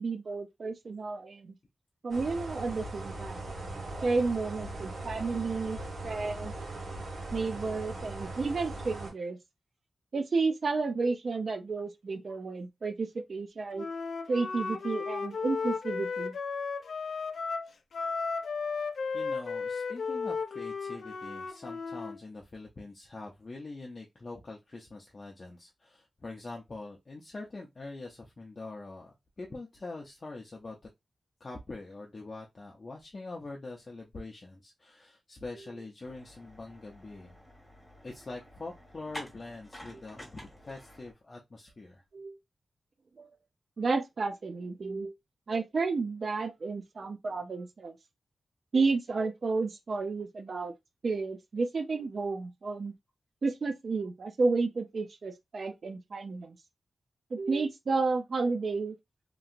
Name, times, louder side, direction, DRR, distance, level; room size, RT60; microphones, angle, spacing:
voice 1, 0.0-1.5 2.0-3.5 4.0-5.8 6.0-6.5 7.3-9.4 10.1-13.9 14.3-16.4 42.1-42.4 43.2-43.3 43.8-45.1 45.5-48.0 48.7-50.7 51.0-52.9 53.4-56.6 57.3-59.0, right 4 dB, 55° right, 0.5 m, -31 dB
sound 1, 2.1-9.1, right 2 dB, 85° right, 1.6 m, -39 dB
Wind instrument woodwind instrument, 13.8-22.2, left 5 dB, 75° left, 0.4 m, -34 dB
voice 2, 19.1-30.8 31.4-37.4 38.0-42.0, left 3 dB, 40° left, 0.6 m, -44 dB
sound 2, 36.0-41.1, left 1 dB, 10° left, 1.4 m, -49 dB
3.0 x 2.8 x 2.5 m
wide cardioid pair, 110°, 0 cm